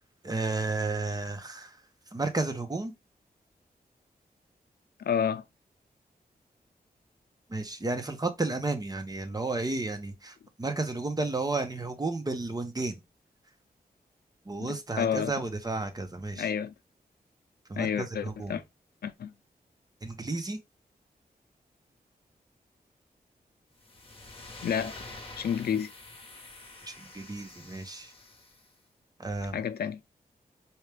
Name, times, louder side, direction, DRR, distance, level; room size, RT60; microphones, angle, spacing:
voice 1, 0.2-1.8 2.1-2.9 7.5-13.0 14.5-16.5 17.7-18.6 20.0-20.6 26.8-28.1 29.2-29.6, right 3 dB, 25° right, 0.8 m, -32 dB
voice 2, 5.0-5.4 14.6-15.3 16.4-16.7 17.8-18.6 19.0-19.3 24.6-25.1 25.4-25.9 29.5-30.0, left 8 dB, 80° left, 0.4 m, -30 dB
sound 1, 23.8-28.7, left 2 dB, 35° left, 1.1 m, -47 dB
4.3 x 2.4 x 3.3 m
wide cardioid pair, 110°, 16 cm